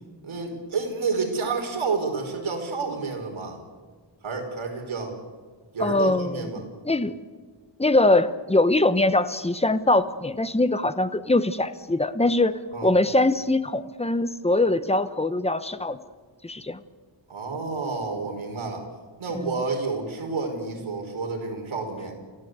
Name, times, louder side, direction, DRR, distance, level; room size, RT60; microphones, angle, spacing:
voice 1, 0.2-3.6 4.2-5.1 5.7-6.6 12.7-12.9 17.3-18.8 19.2-22.2, right 4 dB, 75° right, 3 dB, 5.1 m, -29 dB
voice 2, 5.8-6.5 6.9-7.1 7.8-16.0 16.4-16.8 19.3-19.5, left 2 dB, 15° left, 12 dB, 0.9 m, -22 dB
29.5 x 15.0 x 8.1 m, 1.5 s
wide cardioid pair, 140°, 48 cm